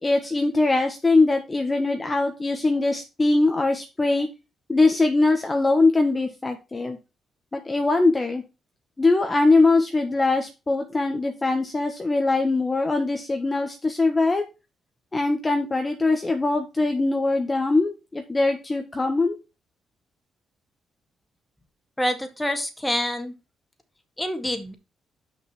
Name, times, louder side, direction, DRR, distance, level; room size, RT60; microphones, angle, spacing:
voice 1, 0.0-4.3 4.7-7.0 7.5-8.4 9.0-14.4 15.1-19.4, left 3 dB, 25° left, 5 dB, 1.3 m, -22 dB
voice 2, 22.0-23.3 24.2-24.7, equal, 10° left, 7 dB, 1.9 m, -26 dB
6.1 x 5.3 x 5.9 m, 0.28 s
supercardioid pair, 65°, 0 cm